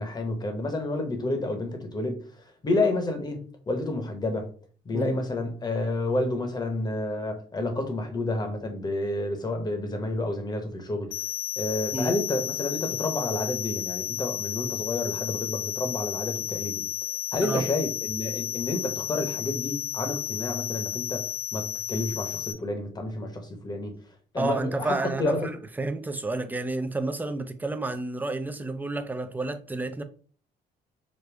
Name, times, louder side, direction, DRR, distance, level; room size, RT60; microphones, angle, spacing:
voice 1, 0.0-2.2 2.6-4.5 4.8-11.1 11.6-16.8 17.3-23.9 24.3-25.5, left 2 dB, 25° left, 1.0 m, -30 dB
sound 1, 11.1-22.5, left 11 dB, 60° left, 0.7 m, -33 dB
voice 2, 24.4-30.0, right 2 dB, 10° right, 0.4 m, -30 dB
5.1 x 2.2 x 3.3 m
cardioid pair, 110°, 17 cm